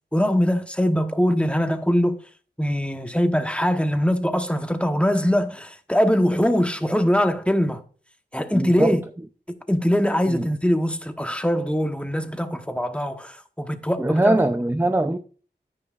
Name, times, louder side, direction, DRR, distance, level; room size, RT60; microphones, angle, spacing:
voice 1, 0.1-2.2 2.6-7.8 8.3-9.0 9.7-14.4, equal, 5° left, 1.1 m, -22 dB
voice 2, 8.5-9.0 10.3-10.5 14.0-15.2, right 1 dB, 10° right, 0.6 m, -21 dB
9.7 x 9.5 x 2.5 m
wide cardioid pair, 40°, 19 cm